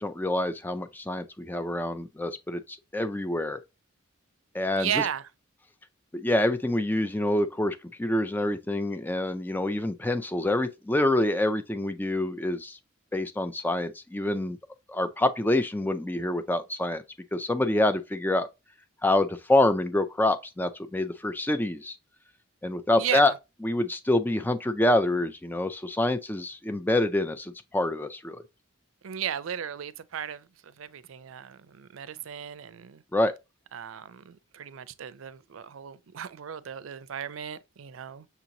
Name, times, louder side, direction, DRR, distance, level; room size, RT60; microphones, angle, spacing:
voice 1, 0.0-3.6 4.5-5.1 6.1-12.8 13.1-14.6 14.9-17.0 17.3-18.5 19.0-22.0 22.6-23.3 23.6-28.4 33.1-33.3, left 1 dB, 10° left, 0.4 m, -26 dB
voice 2, 4.8-5.2 22.9-23.3 29.0-33.0 33.7-38.3, right 9 dB, 80° right, 0.4 m, -35 dB
6.8 x 2.9 x 2.6 m
head